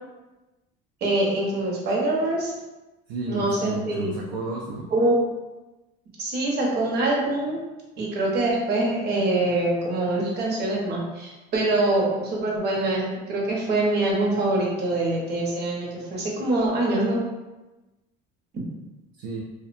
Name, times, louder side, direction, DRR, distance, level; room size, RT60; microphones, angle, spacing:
voice 1, 1.0-2.5 3.3-4.1 4.9-5.2 6.2-7.6 8.0-17.2 18.5-18.6, right 2 dB, 50° right, -3 dB, 0.8 m, -24 dB
voice 2, 3.1-4.9 19.2-19.4, right 2 dB, 65° right, -2 dB, 0.4 m, -32 dB
2.5 x 2.1 x 2.5 m, 1.1 s
cardioid pair, 125°, 21 cm